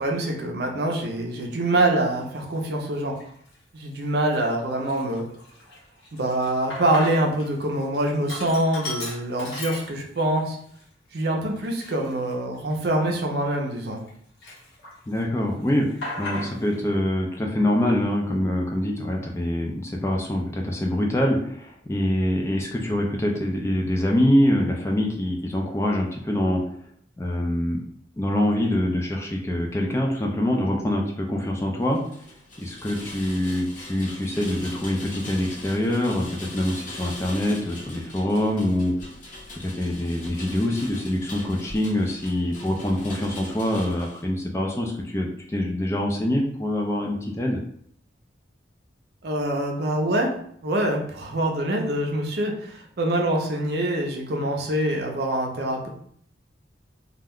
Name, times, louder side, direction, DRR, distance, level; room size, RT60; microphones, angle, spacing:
voice 1, 0.0-3.1 3.7-5.2 6.1-10.6 11.1-14.0 49.2-50.3 50.6-55.9, right 1 dB, 55° right, 1 dB, 0.5 m, -25 dB
Sink (filling or washing), 2.2-2.4 3.0-3.6 3.9-4.0 4.3-7.5 7.8-10.3 10.8-10.9 11.6-14.1 14.4-15.2 15.5-16.8, left 2 dB, 80° left, 0.9 m, -37 dB
voice 2, 15.1-26.6 27.2-27.8 28.2-32.0 32.6-38.9 39.5-47.6, left 1 dB, 15° left, 0 dB, 0.3 m, -25 dB
Rain, 31.9-44.2, left 2 dB, 45° left, 0.7 m, -41 dB
2.3 x 2.1 x 3.5 m, 0.64 s
head